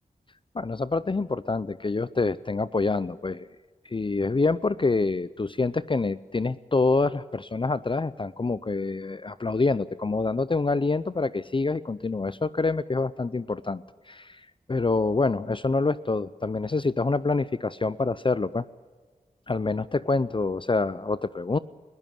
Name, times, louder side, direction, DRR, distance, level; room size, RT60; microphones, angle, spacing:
voice 1, 0.5-3.5 3.8-18.6 19.5-21.6, left 3 dB, 35° left, 16 dB, 0.6 m, -26 dB
20.5 x 16.5 x 9.0 m, 1.4 s
cardioid pair, 40°, 15 cm